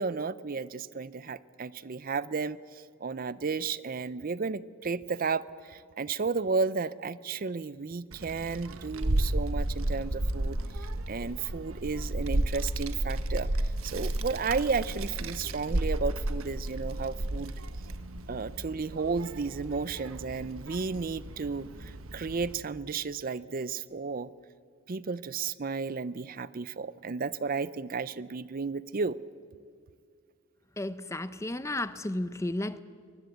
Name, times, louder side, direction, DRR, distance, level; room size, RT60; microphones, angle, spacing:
voice 1, 0.0-17.5 18.3-24.3 24.9-29.2, right 4 dB, 40° right, 17 dB, 0.5 m, -33 dB
Child speech kid speaking, 8.1-22.5, right 1 dB, 70° right, 1.3 m, -33 dB
voice 2, 30.8-32.8, left 1 dB, 15° left, 14 dB, 0.6 m, -33 dB
23.5 x 20.0 x 8.1 m, 2.1 s
head